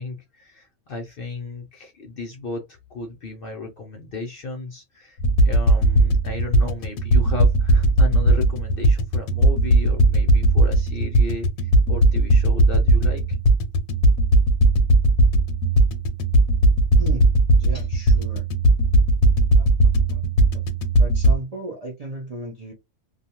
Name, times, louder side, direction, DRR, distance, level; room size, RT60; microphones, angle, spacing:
voice 1, 0.0-5.2 5.4-13.2, left 3 dB, 65° left, 0.6 m, -34 dB
sound 1, 5.2-21.4, right 1 dB, 90° left, 1.0 m, -17 dB
voice 2, 17.0-17.3 17.6-18.4 19.6-19.7 20.1-20.2 21.0-22.7, right 2 dB, 55° right, 0.4 m, -35 dB
2.4 x 2.3 x 2.8 m
omnidirectional pair, 1.4 m